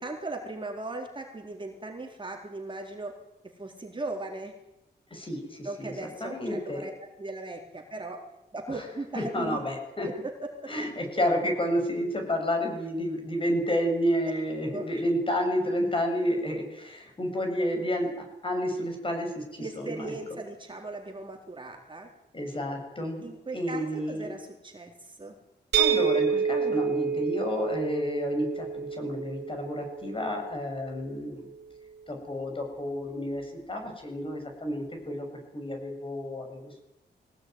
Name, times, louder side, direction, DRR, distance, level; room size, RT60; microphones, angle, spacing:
voice 1, 0.0-3.1 3.6-4.5 5.6-8.2 8.5-9.6 10.0-10.1 14.7-14.9 19.6-22.1 23.2-25.4, right 2 dB, 25° right, 1 dB, 3.9 m, -38 dB
voice 2, 5.1-5.9 6.2-6.9 8.7-8.8 9.3-10.1 10.7-20.1 22.3-24.3 25.8-31.5 32.1-36.8, equal, 30° left, 3 dB, 7.8 m, -30 dB
sound 1, 25.7-31.5, right 7 dB, 70° right, 3.8 m, -29 dB
23.0 x 18.0 x 9.6 m, 0.89 s
wide cardioid pair, 130°, 18 cm